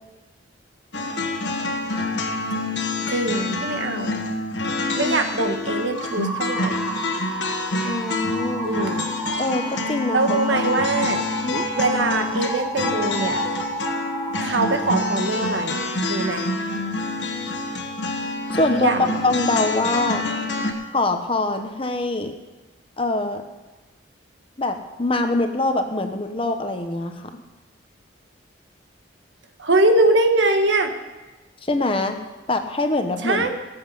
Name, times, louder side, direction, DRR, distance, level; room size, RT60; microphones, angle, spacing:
sound 1, 0.9-20.7, left 2 dB, 65° left, 1.5 m, -27 dB
voice 1, 3.1-4.2 5.0-6.7 8.6-9.4 10.1-11.2 11.8-13.4 14.4-15.8 16.1-16.5 18.7-19.2 29.6-30.9 33.2-33.5, right 2 dB, 75° right, 6 dB, 1.4 m, -22 dB
sound 2, 5.9-15.2, right 2 dB, 15° right, 3.2 m, -32 dB
voice 2, 7.8-8.7 9.4-10.6 11.4-11.7 18.5-20.2 20.9-22.3 23.0-23.4 24.6-27.3 31.6-32.2 32.5-33.5, left 2 dB, 30° left, 6 dB, 1.0 m, -24 dB
19.0 x 8.0 x 5.6 m, 1.2 s
head